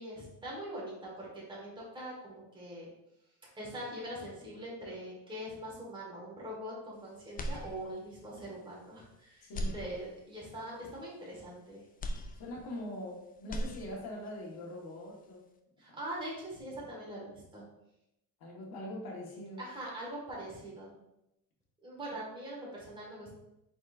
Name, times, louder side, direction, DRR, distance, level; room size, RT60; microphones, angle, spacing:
voice 1, 0.0-2.9 3.4-11.8 15.8-17.6 19.6-20.9 21.8-23.3, right 1 dB, 10° right, -4 dB, 1.7 m, -43 dB
sound 1, 7.3-8.2 8.7-8.8 9.4-10.5 12.0-13.1 13.4-14.3, equal, 20° left, 0.4 m, -39 dB
voice 2, 9.4-9.8 12.3-15.4 15.9-16.0 18.4-19.6, left 1 dB, 60° left, -2 dB, 1.6 m, -42 dB
4.6 x 4.3 x 2.6 m, 0.86 s
cardioid pair, 105°, 41 cm